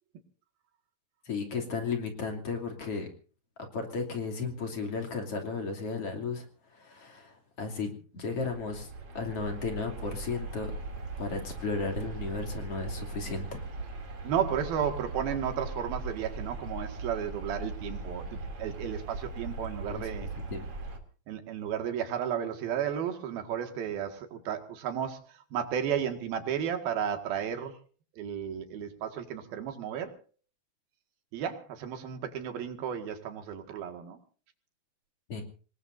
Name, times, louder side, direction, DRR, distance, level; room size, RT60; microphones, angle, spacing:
voice 1, 1.3-3.1 3.6-6.5 6.7-8.9 9.2-10.7 11.2-13.6 19.9-20.1 20.5-20.7 35.3-35.4, left 4 dB, 45° left, 3 dB, 3.6 m, -34 dB
sound 1, 8.3-21.0, right 3 dB, 45° right, 3.6 m, -39 dB
voice 2, 14.2-20.3 21.3-25.2 25.5-27.8 28.2-30.2 31.3-34.2, right 8 dB, 90° right, 6 dB, 3.8 m, -33 dB
26.5 x 20.0 x 2.7 m, 0.40 s
omnidirectional pair, 4.1 m